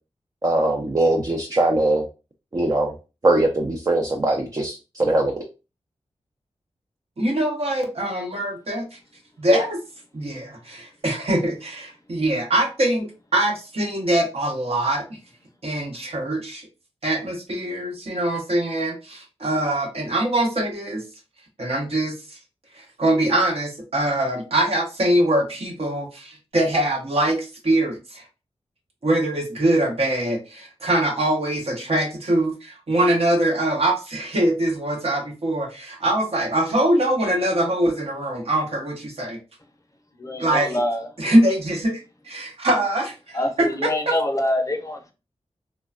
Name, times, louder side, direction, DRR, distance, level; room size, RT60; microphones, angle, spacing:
voice 1, 0.4-2.0 2.5-2.9 3.2-5.4, right 2 dB, 30° right, 0.5 m, -21 dB
voice 2, 7.2-8.8 9.4-9.8 10.1-15.2 15.6-16.7 17.0-21.0 21.6-22.4 22.7-28.2 29.0-39.4 40.4-40.8 41.2-44.1, right 1 dB, 60° right, 1.0 m, -23 dB
voice 3, 40.2-41.1 43.3-45.1, left 1 dB, 30° left, 0.6 m, -25 dB
3.1 x 2.2 x 2.4 m
wide cardioid pair, 65°, 11 cm